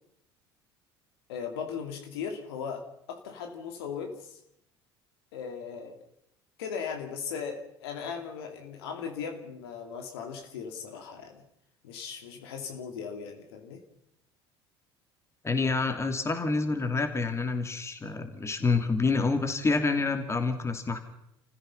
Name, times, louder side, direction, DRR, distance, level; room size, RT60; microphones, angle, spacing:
voice 1, 1.3-4.4 5.3-6.0 6.6-11.4 11.8-13.8, left 6 dB, 70° left, 4 dB, 2.7 m, -38 dB
voice 2, 15.4-21.0, left 3 dB, 20° left, 7 dB, 2.8 m, -27 dB
30.0 x 15.5 x 5.7 m, 0.78 s
figure-of-eight pair, 65°, 14 cm